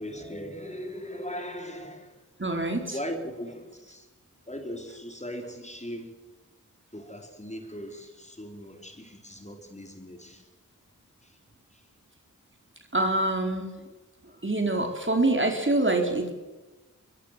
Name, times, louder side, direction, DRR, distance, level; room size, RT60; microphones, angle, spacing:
voice 1, 0.0-2.2 2.9-4.1 4.4-6.2 6.9-10.5 11.2-11.4 11.7-11.9 14.3-14.4, equal, 20° left, 3.9 m, -39 dB
voice 2, 2.4-3.0 12.9-13.7 14.4-16.3, right 2 dB, 35° right, 4.2 m, -25 dB
22.0 x 21.5 x 7.5 m
wide cardioid pair, 45°, 32 cm